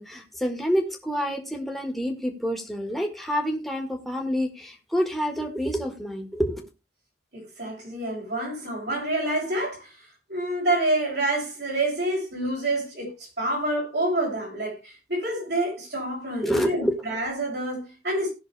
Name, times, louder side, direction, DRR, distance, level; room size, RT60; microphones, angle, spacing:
voice 1, 0.0-6.7 16.4-16.9, equal, ahead, 1.7 m, -27 dB
voice 2, 7.3-18.3, right 1 dB, 75° right, 7.0 m, -28 dB
18.0 x 6.2 x 3.3 m
head